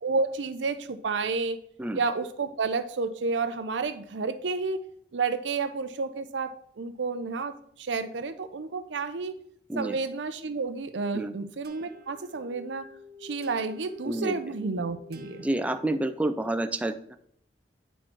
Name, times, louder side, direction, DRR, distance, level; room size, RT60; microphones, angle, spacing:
voice 1, 0.0-1.6 1.9-4.8 5.1-9.4 9.7-12.9 13.2-15.4, right 4 dB, 90° right, 11 dB, 0.6 m, -30 dB
sound 1, 11.6-16.4, left 3 dB, 60° right, 0.9 m, -49 dB
voice 2, 14.0-14.4 15.4-17.2, right 1 dB, 10° right, 7 dB, 0.3 m, -29 dB
9.1 x 4.3 x 4.5 m, 0.68 s
head